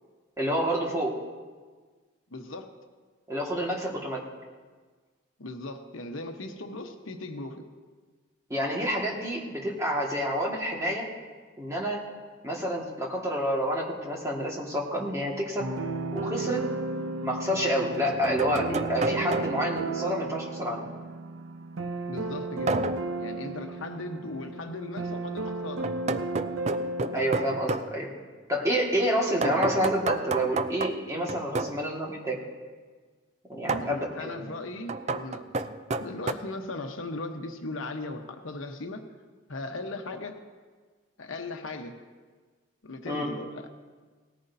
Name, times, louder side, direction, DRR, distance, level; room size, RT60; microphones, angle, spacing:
voice 1, 0.4-1.2 3.3-4.2 8.5-11.1 11.6-12.0 12.4-15.7 16.1-16.6 17.0-20.8 27.1-28.1 28.5-32.4 33.5-34.5 43.1-43.3, equal, 15° right, -3 dB, 1.8 m, -28 dB
voice 2, 2.3-2.7 5.4-7.6 22.1-25.9 33.7-35.4 36.0-39.0 39.5-40.4 41.2-42.0 42.8-43.7, left 2 dB, 75° left, 5 dB, 1.0 m, -38 dB
sound 1, 15.6-27.6, right 3 dB, 75° right, 0.7 m, -34 dB
sound 2, 16.4-16.5 17.8-19.8 22.7-23.1 25.8-27.9 29.4-31.8 33.7-34.0 34.9-36.3, right 3 dB, 35° right, 0.4 m, -31 dB
18.5 x 14.0 x 2.7 m, 1.5 s
head